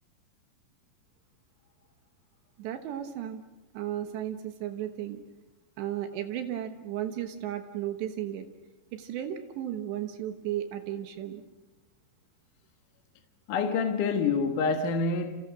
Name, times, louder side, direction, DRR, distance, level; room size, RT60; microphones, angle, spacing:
voice 1, 2.6-3.4 3.7-5.2 5.8-8.5 8.9-11.4, right 11 dB, 80° right, 3.4 m, -34 dB
voice 2, 13.5-15.3, left 4 dB, 60° left, 2.6 m, -27 dB
30.0 x 29.5 x 6.1 m
omnidirectional pair, 5.1 m